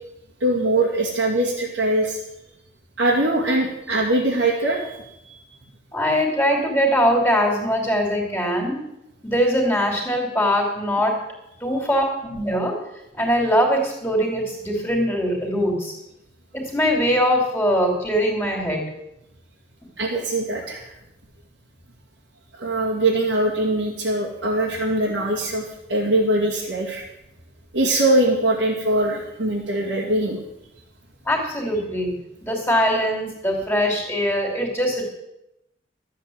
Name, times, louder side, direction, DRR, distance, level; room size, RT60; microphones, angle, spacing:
voice 1, 0.4-2.2 3.0-5.0 5.3-5.4 20.0-20.9 22.6-27.0 27.7-30.4, right 1 dB, 85° right, -4 dB, 2.5 m, -22 dB
voice 2, 5.9-8.8 9.2-11.2 11.6-12.8 13.1-15.9 16.5-18.8 31.3-32.2 32.4-35.0, equal, 10° left, 1 dB, 2.9 m, -22 dB
13.0 x 8.4 x 7.8 m, 0.87 s
head